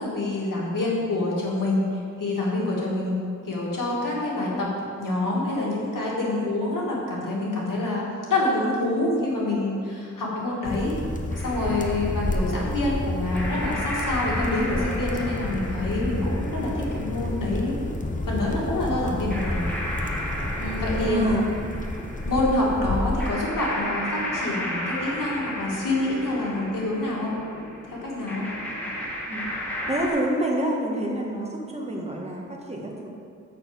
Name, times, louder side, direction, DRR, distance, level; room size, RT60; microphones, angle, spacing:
voice 1, 0.0-1.8 2.2-3.2 3.5-4.7 5.0-8.0 8.3-11.0 11.4-17.8 18.2-19.7 20.6-21.2 22.3-27.3 27.9-28.5, left 2 dB, 90° left, -5 dB, 2.1 m, -26 dB
sound 1, 10.6-23.3, left 1 dB, 25° left, 0.8 m, -30 dB
sound 2, 11.3-30.1, equal, 5° left, 2.2 m, -34 dB
voice 2, 21.0-21.4 28.9-29.0 29.3-29.5 29.9-33.1, right 1 dB, 20° right, -1 dB, 1.6 m, -27 dB
6.7 x 6.0 x 7.0 m, 2.3 s
wide cardioid pair, 65°, 31 cm